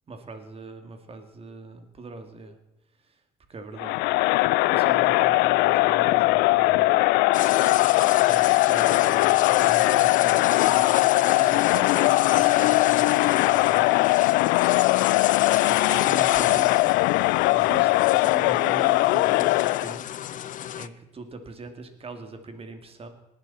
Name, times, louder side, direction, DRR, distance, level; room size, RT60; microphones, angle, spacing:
voice 1, 0.1-2.6 3.0-3.2 3.5-4.0 4.7-7.3 8.2-14.1 15.1-16.9 17.5-20.0 20.8-23.1, right 3 dB, 35° right, 6 dB, 2.7 m, -41 dB
Crowd, 3.8-20.0, left 21 dB, 85° left, 0.4 m, -20 dB
sound 1, 7.3-20.9, left 11 dB, 50° left, 0.7 m, -32 dB
19.0 x 11.5 x 4.3 m, 0.96 s
cardioid pair, 95°, 17 cm